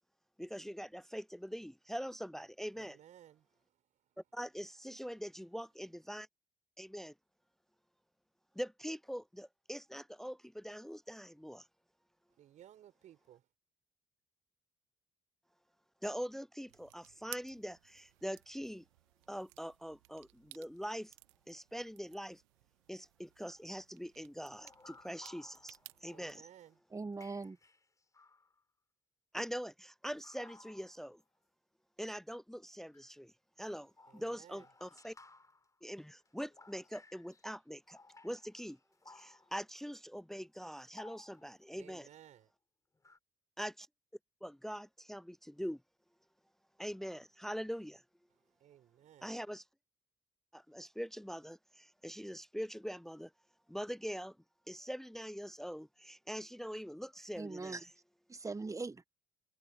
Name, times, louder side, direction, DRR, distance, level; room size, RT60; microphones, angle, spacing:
voice 1, 0.4-3.0 4.3-6.3 6.8-7.1 8.6-11.7 16.0-18.8 19.3-21.1 21.5-22.4 22.9-26.4 29.3-31.2 32.0-33.3 33.6-35.2 35.8-38.0 38.2-38.8 39.1-42.1 43.6-43.9 44.4-45.8 46.8-48.0 49.2-49.6 50.5-53.3 53.7-54.4 54.7-57.9, equal, 5° left, 0.6 m, -43 dB
voice 2, 2.7-4.2 12.3-13.5 25.9-26.8 34.1-34.7 41.5-42.5 48.3-49.4, right 11 dB, 60° right, 5.4 m, -60 dB
sound 1, 16.7-26.4, right 24 dB, 80° right, 1.2 m, -57 dB
sound 2, 24.5-26.7 27.1-28.6 30.2-31.2 32.9-33.1 33.6-37.5 37.9-39.7 40.6-41.6 42.9-43.2, left 3 dB, 25° left, 4.2 m, -60 dB
voice 3, 26.9-27.6 57.4-57.8 58.3-59.1, right 3 dB, 20° right, 1.6 m, -41 dB
hypercardioid pair, 50°, 14 cm